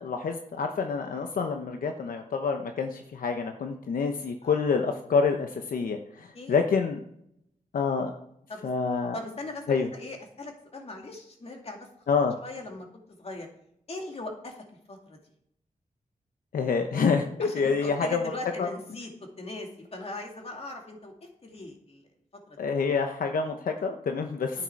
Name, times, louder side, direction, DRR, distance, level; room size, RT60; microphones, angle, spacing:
voice 1, 0.0-7.0 7.7-8.1 8.6-9.1 9.7-9.9 12.1-12.4 16.5-18.3 18.6-18.7 22.6-24.6, left 5 dB, 80° left, 5 dB, 0.9 m, -27 dB
voice 2, 9.1-11.9 12.4-12.9 13.2-13.5 13.9-15.2 17.4-19.1 19.4-21.1 21.4-22.1 22.5-22.6 24.5-24.6, left 2 dB, 45° left, 2 dB, 2.5 m, -40 dB
11.0 x 9.0 x 4.6 m, 0.73 s
wide cardioid pair, 90°, 14 cm